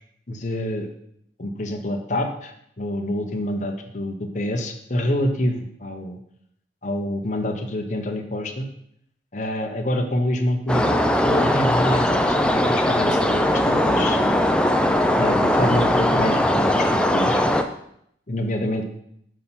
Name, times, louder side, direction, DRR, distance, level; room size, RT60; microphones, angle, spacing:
voice 1, 0.3-0.9 1.4-6.2 6.8-8.7 9.3-14.4 15.2-17.4 18.3-18.8, left 1 dB, 40° left, 4 dB, 0.9 m, -27 dB
sound 1, 10.7-17.6, left 1 dB, 5° left, 0.4 m, -20 dB
6.4 x 5.4 x 5.8 m, 0.72 s
head